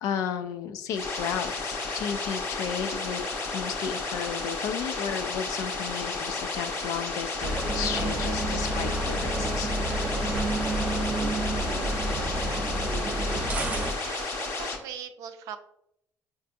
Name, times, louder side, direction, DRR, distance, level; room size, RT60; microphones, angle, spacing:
voice 1, 0.0-9.7, left 8 dB, 85° left, 9 dB, 0.4 m, -33 dB
sound 1, 0.9-14.8, left 3 dB, 55° left, 0.7 m, -32 dB
sound 2, 7.4-13.9, right 1 dB, 25° right, 0.4 m, -29 dB
voice 2, 13.9-15.6, right 8 dB, 85° right, 8 dB, 0.4 m, -40 dB
4.5 x 2.5 x 2.5 m, 0.76 s
cardioid pair, 130°, 6 cm